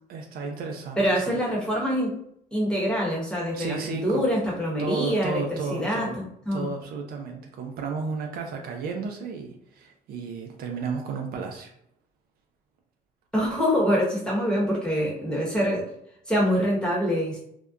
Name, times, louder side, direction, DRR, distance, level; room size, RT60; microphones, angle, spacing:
voice 1, 0.1-1.4 3.5-4.3 4.8-6.2 6.5-11.7, right 5 dB, 65° right, 3 dB, 0.5 m, -33 dB
voice 2, 1.0-2.1 2.5-6.7 13.3-15.9 16.3-17.4, equal, 5° left, -5 dB, 1.0 m, -25 dB
2.7 x 2.1 x 2.3 m, 0.71 s
cardioid pair, 110°, 17 cm